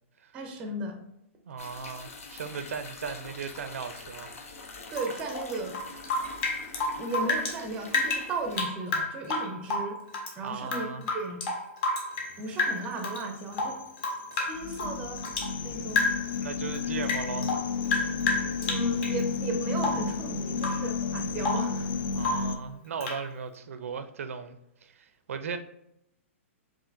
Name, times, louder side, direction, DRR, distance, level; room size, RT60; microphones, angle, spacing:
voice 1, 0.3-1.0 4.9-5.8 7.0-10.0 10.4-10.9 11.1-11.4 12.4-13.8 14.3-15.2 15.6-16.1 18.7-21.9 22.3-22.5, right 2 dB, 15° right, 0.5 m, -35 dB
voice 2, 1.5-4.3 10.4-11.0 16.4-17.5 22.1-25.6, right 6 dB, 80° right, 0.4 m, -37 dB
sound 1, 1.6-8.6, left 3 dB, 85° left, 0.7 m, -45 dB
Rain / Drip, 4.9-7.6 7.9-10.3 10.6-12.3 12.6-13.2 13.5-15.5 15.9-16.4 16.7-19.2 19.8-20.1 20.6-20.9 21.2-21.7 22.2-22.5 23.0-23.2, left 3 dB, 25° left, 0.7 m, -30 dB
sound 2, 12.2-22.6, left 5 dB, 50° left, 0.3 m, -32 dB
5.5 x 2.5 x 2.5 m
hypercardioid pair, 165°, 7 cm